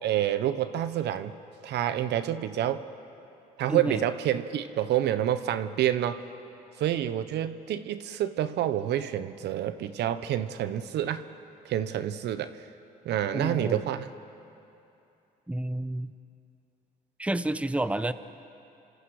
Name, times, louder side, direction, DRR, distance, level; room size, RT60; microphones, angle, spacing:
voice 1, 0.0-1.3 1.6-2.8 3.6-6.2 6.8-11.3 11.6-12.6 13.0-14.1, right 11 dB, 75° right, 12 dB, 1.0 m, -28 dB
voice 2, 3.7-4.0 13.3-13.8 15.5-16.1 17.2-18.1, right 1 dB, 5° right, 12 dB, 0.9 m, -30 dB
29.0 x 26.0 x 4.9 m, 2.8 s
supercardioid pair, 70°, 18 cm